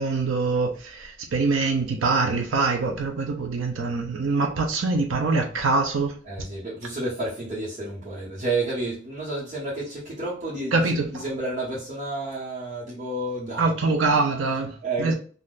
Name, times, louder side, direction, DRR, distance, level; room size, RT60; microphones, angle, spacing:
voice 1, 0.0-6.1 10.7-11.2 13.6-15.1, right 3 dB, 85° right, 0.6 m, -24 dB
voice 2, 6.3-13.9 14.8-15.1, right 2 dB, 40° right, 1.2 m, -31 dB
3.7 x 2.5 x 2.4 m
head